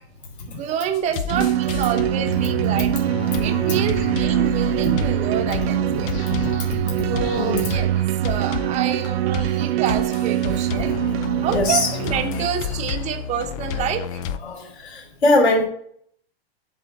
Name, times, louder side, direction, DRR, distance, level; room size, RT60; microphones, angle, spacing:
voice 1, 0.5-2.9 3.4-6.1 7.1-7.9 8.2-10.9 11.4-14.1, right 9 dB, 20° right, 5 dB, 0.8 m, -28 dB
sound 1, 0.9-14.4, left 8 dB, 35° left, 0.4 m, -31 dB
sound 2, 1.3-12.5, right 12 dB, 75° right, 0.5 m, -23 dB
voice 2, 3.7-4.1 4.9-5.0 6.6-7.0 7.3-7.7 9.4-9.7 11.5-11.9 12.3-12.7 14.4-15.7, left 2 dB, 90° left, -2 dB, 3.0 m, -23 dB
8.1 x 3.8 x 6.6 m, 0.64 s
hypercardioid pair, 135°, 32 cm